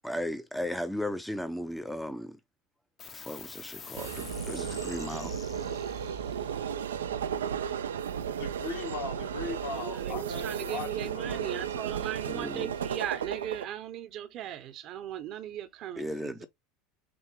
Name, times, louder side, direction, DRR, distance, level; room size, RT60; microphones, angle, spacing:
voice 1, 0.0-2.4 3.1-5.3 12.3-12.7 16.0-16.5, left 1 dB, ahead, 0.5 m, -36 dB
sound 1, 3.0-9.9, left 6 dB, 35° left, 0.8 m, -47 dB
sound 2, 4.0-13.6, right 8 dB, 85° right, 0.4 m, -34 dB
voice 2, 8.3-11.7, left 3 dB, 75° left, 2.3 m, -38 dB
voice 3, 9.7-16.5, right 11 dB, 50° right, 0.7 m, -38 dB
6.1 x 2.1 x 3.0 m
hypercardioid pair, 80°, 0 cm